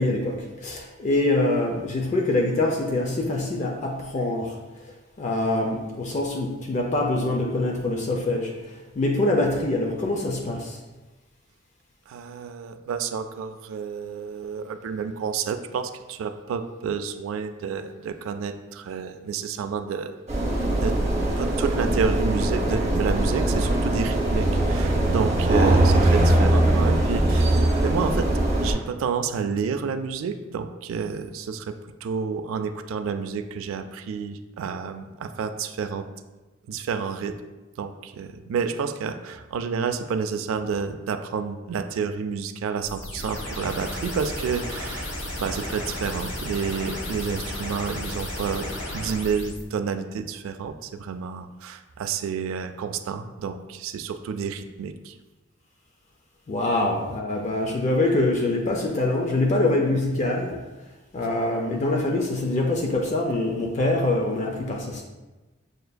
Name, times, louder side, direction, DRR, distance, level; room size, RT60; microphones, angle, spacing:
voice 1, 0.0-4.6 4.8-10.8 56.5-60.6 61.1-65.0, left 2 dB, 35° left, 0 dB, 0.4 m, -24 dB
voice 2, 12.1-20.2 20.8-20.9 21.4-28.3 28.6-31.7 32.0-36.0 36.7-37.4 37.8-55.2 56.8-56.9 61.3-61.4, right 6 dB, 80° right, 9 dB, 0.3 m, -30 dB
sound 1, 20.3-28.7, right 1 dB, 30° right, 0.8 m, -21 dB
sound 2, 42.8-49.6, left 1 dB, 60° left, 0.8 m, -33 dB
6.6 x 2.5 x 2.2 m, 1.2 s
head